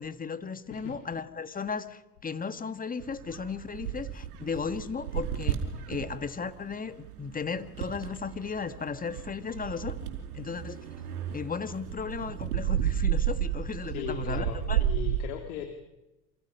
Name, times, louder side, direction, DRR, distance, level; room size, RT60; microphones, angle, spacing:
voice 1, 0.0-10.0 10.3-10.8 11.3-14.8, left 5 dB, 20° left, 10 dB, 1.8 m, -35 dB
sound 1, 3.0-15.2, right 10 dB, 65° right, 4.8 m, -33 dB
voice 2, 13.8-15.7, left 9 dB, 65° left, 6 dB, 2.7 m, -38 dB
28.0 x 25.5 x 5.6 m, 0.99 s
hypercardioid pair, 80°, 47 cm